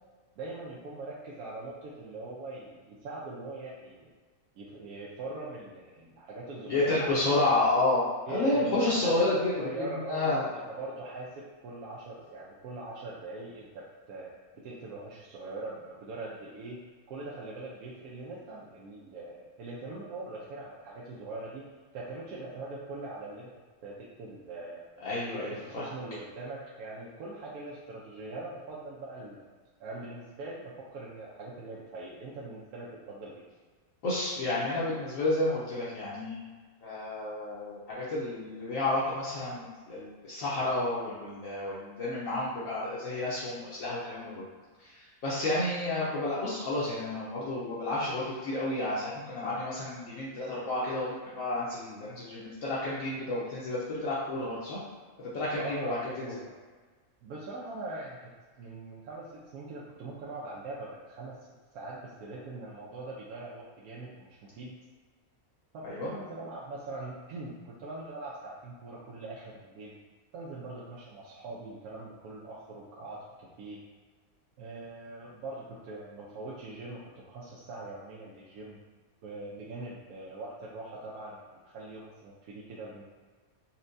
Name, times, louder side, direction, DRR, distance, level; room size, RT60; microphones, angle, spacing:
voice 1, 0.4-4.1 4.6-7.3 8.3-9.1 9.6-14.3 14.6-16.8 17.1-21.7 21.9-23.5 23.8-24.8 25.3-29.5 29.8-33.4 55.6-56.5 57.2-58.3 58.6-61.4 61.7-64.7 65.7-69.9 70.3-73.8 74.6-77.0 77.3-78.8 79.2-83.1, right 2 dB, 80° right, -6 dB, 1.1 m, -42 dB
voice 2, 6.7-10.5 25.0-25.9 34.0-36.5 36.8-44.5 44.8-54.8 55.2-56.3 65.8-66.1, left 2 dB, 70° left, -8 dB, 1.0 m, -31 dB
4.2 x 2.1 x 2.5 m, 1.4 s
omnidirectional pair, 1.6 m